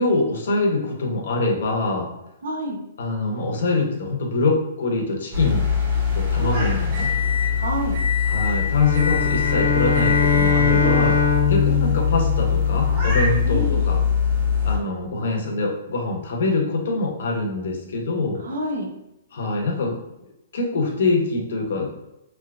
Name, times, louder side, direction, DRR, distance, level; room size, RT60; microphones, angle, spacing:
voice 1, 0.0-2.1 3.0-5.7 6.1-7.1 8.3-11.1 11.5-14.0 14.6-18.4 19.3-19.9 20.5-21.9, left 2 dB, 60° left, 0 dB, 0.8 m, -24 dB
voice 2, 2.4-2.8 6.4-6.6 7.6-8.0 10.7-11.1 13.4-13.8 18.4-18.9, right 1 dB, 70° right, 1 dB, 0.8 m, -28 dB
sound 1, 5.3-14.8, left 6 dB, 25° right, 1.4 m, -22 dB
sound 2, 8.7-13.2, left 5 dB, 90° left, 0.5 m, -22 dB
3.4 x 2.8 x 2.4 m, 0.88 s
hypercardioid pair, 170°, 0 cm